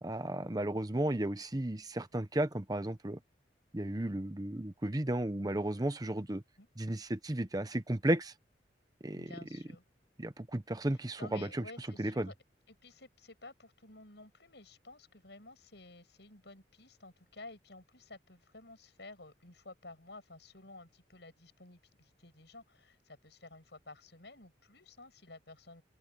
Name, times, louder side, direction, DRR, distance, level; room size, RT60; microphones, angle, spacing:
voice 1, 0.0-3.2 3.7-6.4 6.8-8.3 9.0-9.3 10.2-12.3, right 1 dB, 20° right, 0.8 m, -34 dB
voice 2, 9.2-9.8 10.9-12.3 12.7-25.8, left 2 dB, 70° left, 6.6 m, -53 dB
open air
head